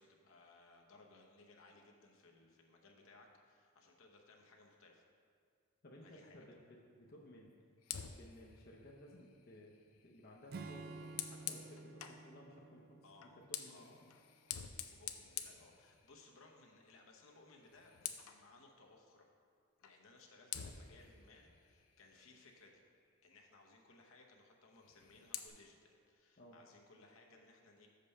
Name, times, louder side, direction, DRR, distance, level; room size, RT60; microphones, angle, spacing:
voice 1, 0.0-5.1 6.0-6.5 13.0-13.4 13.7-14.0 14.7-19.3 19.8-22.8 23.2-27.9, left 3 dB, 70° left, 1 dB, 0.9 m, -63 dB
voice 2, 5.8-7.5 8.1-9.7 10.0-14.1 26.4-26.6, left 1 dB, 45° left, -3 dB, 0.7 m, -58 dB
Fire, 7.8-12.3 13.2-16.4 16.8-17.0 17.4-18.5 19.8-20.0 20.5-22.8 24.7-25.5, left 10 dB, 85° left, 0.5 m, -49 dB
Acoustic guitar / Strum, 10.5-14.0, right 3 dB, 45° right, 0.3 m, -52 dB
6.6 x 5.2 x 5.5 m, 2.2 s
head